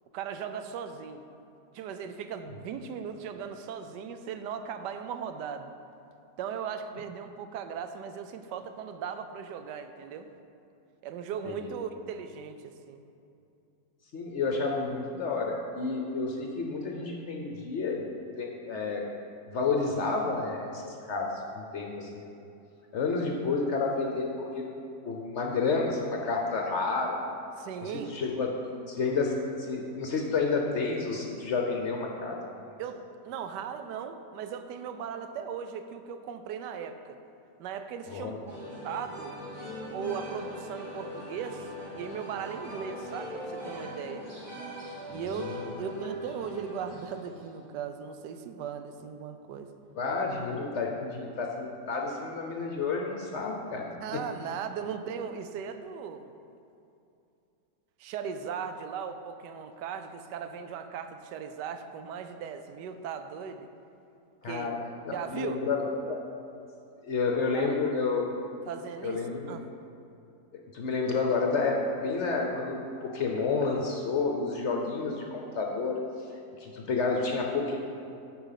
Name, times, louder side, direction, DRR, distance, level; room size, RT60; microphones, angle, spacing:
voice 1, 0.1-1.3 1.7-5.7 6.4-10.3 11.0-13.0 27.6-28.2 32.8-37.2 37.6-38.3 38.8-39.4 39.9-44.3 45.1-49.7 53.9-56.3 58.0-63.7 64.4-64.7 65.1-65.7 67.5-67.8 68.7-69.6, right 7 dB, 90° right, 8 dB, 1.2 m, -38 dB
voice 2, 14.1-18.1 18.4-19.0 19.5-21.3 21.5-22.4 22.9-24.7 25.0-27.2 27.8-28.5 28.9-32.7 38.1-38.4 45.1-45.7 50.0-53.9 64.4-64.8 65.1-66.2 67.0-68.3 69.0-69.6 70.7-76.0 76.6-77.8, left 4 dB, 60° left, 1 dB, 0.8 m, -30 dB
sound 1, 38.5-47.6, equal, 15° right, 1.4 m, -41 dB
8.6 x 4.7 x 5.7 m, 2.6 s
omnidirectional pair, 1.8 m